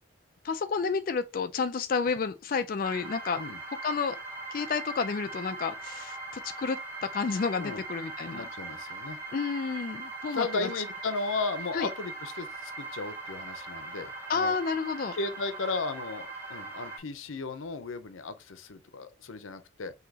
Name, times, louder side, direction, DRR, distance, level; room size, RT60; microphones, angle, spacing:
voice 1, 0.4-3.4 3.8-4.2 4.5-8.5 9.3-10.7 11.7-11.9 14.3-15.1, left 5 dB, 45° left, 0.3 m, -30 dB
sound 1, 2.8-17.0, right 3 dB, 10° right, 1.9 m, -40 dB
voice 2, 8.3-9.2 10.3-14.5 15.1-19.9, left 3 dB, 90° left, 0.6 m, -35 dB
6.0 x 2.8 x 2.8 m
head